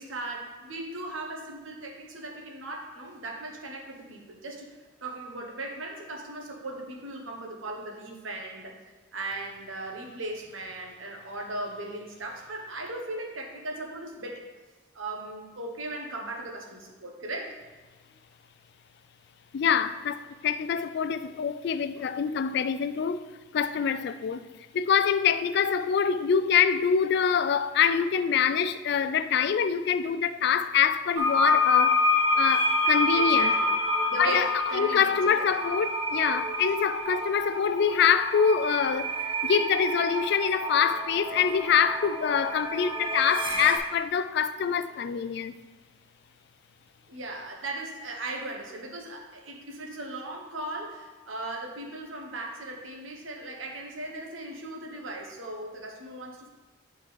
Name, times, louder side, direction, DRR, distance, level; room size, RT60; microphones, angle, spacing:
voice 1, 0.0-14.5 14.9-17.6 22.0-22.1 33.1-33.7 34.0-35.5 47.1-56.5, right 2 dB, 85° right, 1.1 m, -38 dB
voice 2, 19.5-23.3 23.5-24.5 24.7-32.0 32.4-33.5 34.2-39.2 39.4-45.5, left 7 dB, 55° left, 0.3 m, -25 dB
sound 1, 31.2-43.8, left 2 dB, 25° right, 0.9 m, -27 dB
9.4 x 4.5 x 3.3 m
head